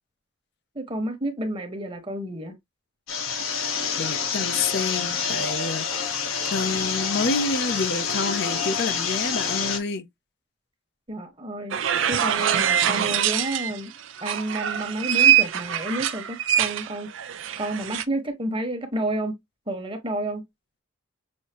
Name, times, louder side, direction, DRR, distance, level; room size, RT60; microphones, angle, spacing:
voice 1, 0.7-2.6 11.1-11.8 12.1-13.9 14.2-19.4 19.7-20.4, right 1 dB, 25° right, 1.2 m, -30 dB
sound 1, 3.1-9.8, left 6 dB, 85° left, 1.3 m, -27 dB
voice 2, 4.0-6.2 6.5-10.1 12.1-12.2, left 3 dB, 55° left, 0.5 m, -28 dB
sound 2, 11.7-13.8 14.2-18.0, right 10 dB, 70° right, 0.5 m, -23 dB
6.3 x 2.7 x 2.9 m
head